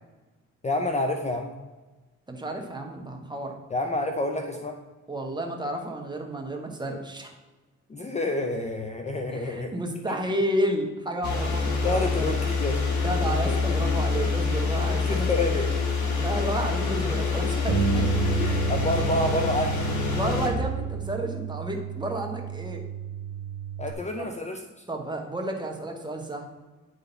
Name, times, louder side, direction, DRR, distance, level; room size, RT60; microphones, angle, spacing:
voice 1, 0.6-1.5 3.7-4.8 7.9-9.7 11.2-11.4 11.8-12.8 13.5-13.6 14.8-15.7 18.4-19.9 23.8-24.8, left 2 dB, 25° left, 4 dB, 0.6 m, -28 dB
voice 2, 2.3-3.6 5.1-7.3 9.3-12.3 13.0-15.7 16.1-18.6 20.1-22.8 24.2-24.3 24.9-26.5, right 1 dB, 15° right, 2 dB, 1.3 m, -31 dB
sound 1, 11.2-20.5, left 4 dB, 70° left, 1.7 m, -26 dB
Bass guitar, 17.7-23.9, right 6 dB, 85° right, 0.9 m, -30 dB
9.5 x 3.9 x 4.0 m, 1.2 s
cardioid pair, 90°, 30 cm